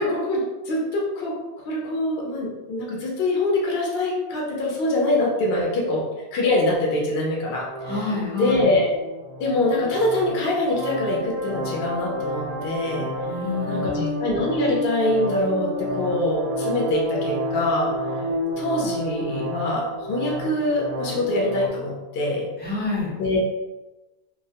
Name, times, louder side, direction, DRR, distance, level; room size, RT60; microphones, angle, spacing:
voice 1, 0.0-1.4 1.7-6.1 6.3-7.7 8.3-8.9 9.4-13.1 13.7-17.9 18.6-22.5 23.2-23.4, left 2 dB, 65° left, -2 dB, 0.7 m, -24 dB
sound 1, 7.7-21.7, equal, 65° right, 0.7 m, -30 dB
voice 2, 7.8-8.7 13.2-14.2 22.6-23.1, left 3 dB, 10° left, -8 dB, 0.5 m, -28 dB
2.3 x 2.1 x 2.7 m, 1.1 s
omnidirectional pair, 1.2 m